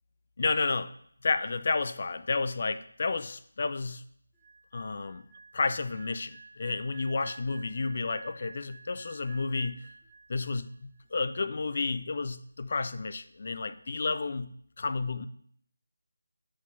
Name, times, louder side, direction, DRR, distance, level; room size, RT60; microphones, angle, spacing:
voice 1, 0.4-0.9 1.2-4.0 4.7-5.3 5.5-9.9 10.3-14.5 14.8-15.3, left 4 dB, 50° left, 12 dB, 0.4 m, -31 dB
sound 1, 4.3-10.7 11.0-11.3, right 4 dB, 5° left, 1.5 m, -51 dB
5.1 x 4.3 x 5.3 m, 0.64 s
figure-of-eight pair, 165°, 0 cm